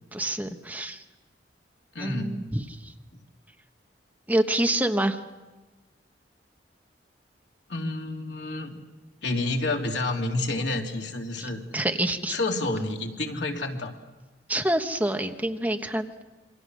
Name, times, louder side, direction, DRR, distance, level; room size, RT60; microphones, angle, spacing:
voice 1, 0.1-1.0 2.0-2.9 4.3-5.2 11.4-12.4 14.5-16.2, right 1 dB, 10° right, 6 dB, 1.2 m, -27 dB
voice 2, 1.9-2.4 7.7-8.8 9.2-11.6 12.3-13.9, left 2 dB, 90° left, 2 dB, 3.0 m, -29 dB
27.5 x 24.5 x 6.4 m, 1.1 s
head